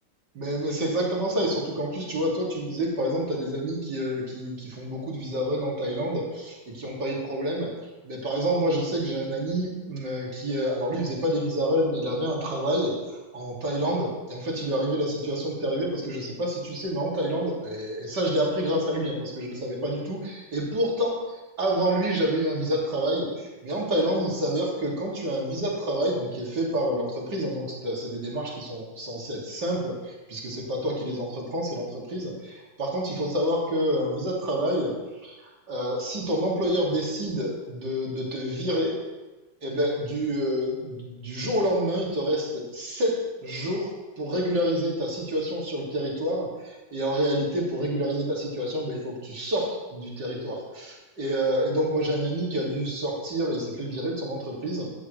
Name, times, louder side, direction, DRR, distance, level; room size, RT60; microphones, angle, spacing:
voice 1, 0.3-7.7 8.0-21.2 21.6-34.9 35.2-39.0 39.6-54.9, equal, 50° right, -3 dB, 3.3 m, -28 dB
15.0 x 11.5 x 3.3 m, 1.2 s
omnidirectional pair, 2.4 m